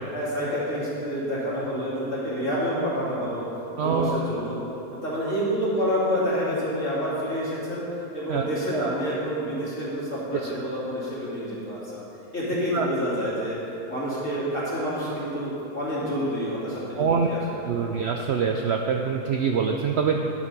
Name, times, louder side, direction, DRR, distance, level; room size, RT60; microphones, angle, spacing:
voice 1, 0.1-3.4 3.8-4.6 5.0-7.8 8.1-12.0 12.3-13.6 13.9-17.4 17.7-17.9, equal, 55° left, -8 dB, 2.8 m, -28 dB
voice 2, 3.8-4.2 8.3-8.9 10.3-10.4 12.7-12.9 17.0-17.3 17.6-20.2, right 6 dB, 65° right, 2 dB, 0.6 m, -25 dB
11.0 x 5.7 x 5.4 m, 3.0 s
omnidirectional pair, 1.6 m